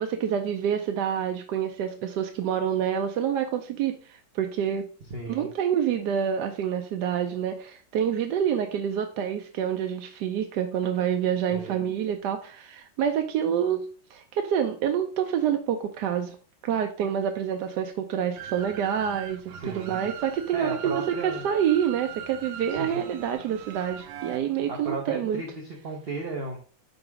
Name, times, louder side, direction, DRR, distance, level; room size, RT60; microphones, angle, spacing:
voice 1, 0.0-4.8 5.3-13.8 14.1-16.4 16.6-25.4, right 9 dB, 75° right, 5 dB, 1.1 m, -27 dB
voice 2, 5.1-5.5 11.5-11.8 19.6-20.1 20.5-21.4 22.7-23.0 24.7-26.6, right 3 dB, 45° right, 0 dB, 0.8 m, -35 dB
sound 1, 18.4-24.4, right 8 dB, 90° right, 1.4 m, -41 dB
5.4 x 4.0 x 4.6 m, 0.39 s
omnidirectional pair, 2.0 m